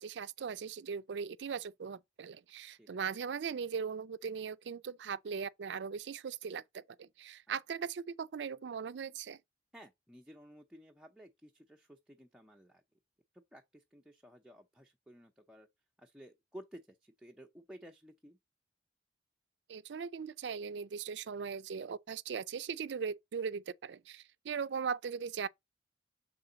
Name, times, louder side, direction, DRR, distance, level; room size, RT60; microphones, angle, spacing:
voice 1, 0.0-9.4 19.7-25.5, right 6 dB, 80° right, 0.4 m, -39 dB
voice 2, 9.7-12.8 13.3-15.7 16.0-18.4, equal, 5° right, 0.6 m, -54 dB
6.8 x 3.8 x 3.9 m
head